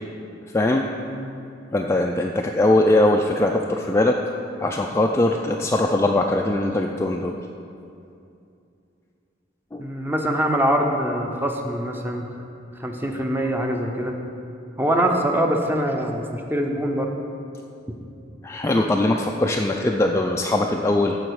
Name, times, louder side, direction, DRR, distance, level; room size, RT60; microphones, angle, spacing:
voice 1, 0.5-0.9 1.7-4.2 4.6-7.3 9.7-9.9 18.4-21.2, left 1 dB, 15° left, 1 dB, 0.3 m, -21 dB
voice 2, 9.8-12.3 12.8-14.2 14.8-17.2, right 1 dB, 10° right, 2 dB, 0.7 m, -24 dB
14.5 x 4.9 x 4.8 m, 2.6 s
head